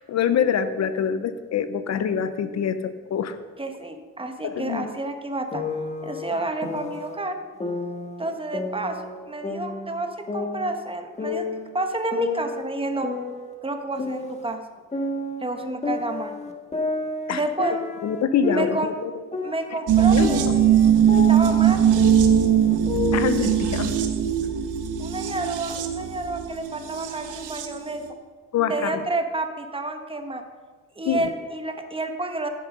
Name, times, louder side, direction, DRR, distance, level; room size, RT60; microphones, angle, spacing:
voice 1, 0.1-3.4 4.4-4.9 17.3-17.4 18.0-19.1 20.0-20.4 23.1-24.0 28.5-29.0 31.0-31.3, left 7 dB, 60° left, 11 dB, 0.8 m, -25 dB
voice 2, 3.6-5.6 6.0-7.4 8.2-11.5 11.7-13.1 13.6-14.6 15.4-16.3 17.3-17.8 18.5-18.9 19.4-20.6 21.1-21.9 25.0-28.0 28.7-30.4 31.0-32.5, right 2 dB, 20° right, 5 dB, 1.4 m, -29 dB
sound 1, 5.5-7.2 7.6-9.2 9.4-11.7 12.1-14.6 14.9-19.0 19.3-23.3, left 3 dB, 20° left, 1.6 m, -31 dB
sound 2, 19.9-27.8 28.1-28.2, right 9 dB, 85° right, 1.3 m, -20 dB
15.5 x 6.9 x 5.3 m, 1.5 s
cardioid pair, 90°, 30 cm